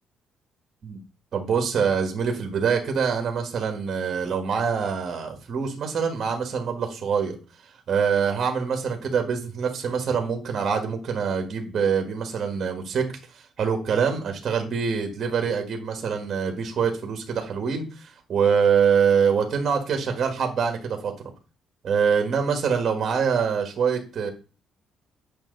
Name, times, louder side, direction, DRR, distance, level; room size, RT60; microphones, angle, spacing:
voice 1, 1.3-7.4 7.9-13.1 13.6-21.1 21.8-24.3, right 6 dB, 40° right, 4 dB, 1.7 m, -24 dB
8.9 x 5.6 x 4.0 m, 0.35 s
cardioid pair, 170°, 0 cm